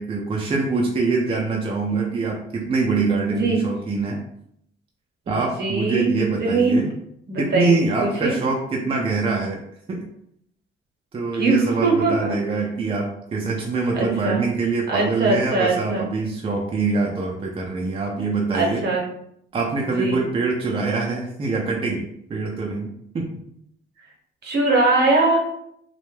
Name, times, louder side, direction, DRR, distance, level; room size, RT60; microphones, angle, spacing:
voice 1, 0.0-4.2 5.3-6.9 7.4-9.6 9.9-10.0 11.1-18.8 19.5-23.3, right 3 dB, 30° right, -1 dB, 0.4 m, -24 dB
voice 2, 3.3-3.6 5.6-6.1 6.4-6.8 7.3-8.3 11.3-12.4 13.9-14.4 14.9-16.1 18.5-19.0 19.9-20.2 24.4-25.4, right 3 dB, 55° right, -1 dB, 0.8 m, -21 dB
2.2 x 2.0 x 3.0 m, 0.73 s
cardioid pair, 90°, 20 cm